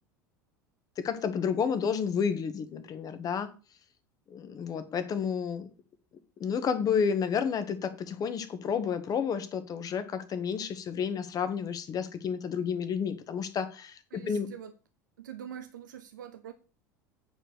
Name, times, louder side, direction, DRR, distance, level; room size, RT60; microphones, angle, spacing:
voice 1, 1.0-3.5 4.3-5.7 6.4-14.5, left 6 dB, 35° left, 10 dB, 1.6 m, -31 dB
voice 2, 14.1-14.7 15.2-16.5, right 9 dB, 75° right, 9 dB, 1.0 m, -44 dB
9.0 x 4.7 x 6.6 m, 0.35 s
figure-of-eight pair, 75°, 10 cm